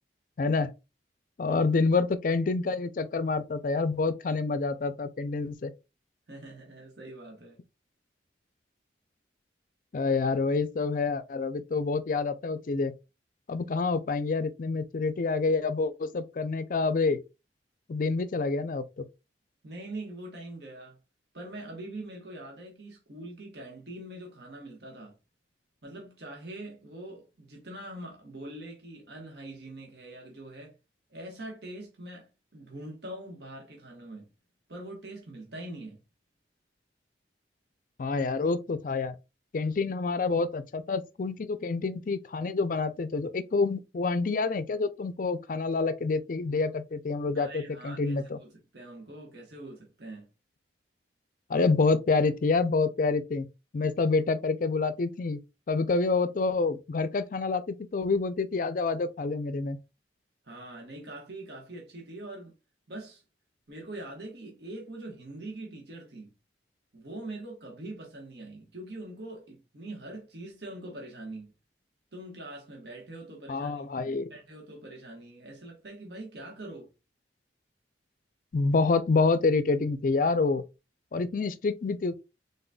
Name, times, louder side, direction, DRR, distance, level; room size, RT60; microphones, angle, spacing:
voice 1, 0.4-0.7 1.4-5.7 9.9-12.9 13.5-17.2 17.9-19.0 38.0-39.2 39.5-48.4 51.5-53.5 53.7-55.4 55.7-59.8 73.5-74.3 78.5-80.6 81.1-82.2, left 4 dB, 45° left, 0.4 m, -27 dB
voice 2, 6.3-7.6 19.6-21.0 21.3-25.2 25.8-30.7 31.1-34.3 34.7-36.0 47.3-50.3 60.4-62.5 62.9-63.2 63.7-66.3 66.9-71.5 72.1-76.9, right 1 dB, 65° right, 1.2 m, -43 dB
3.9 x 3.9 x 2.2 m
head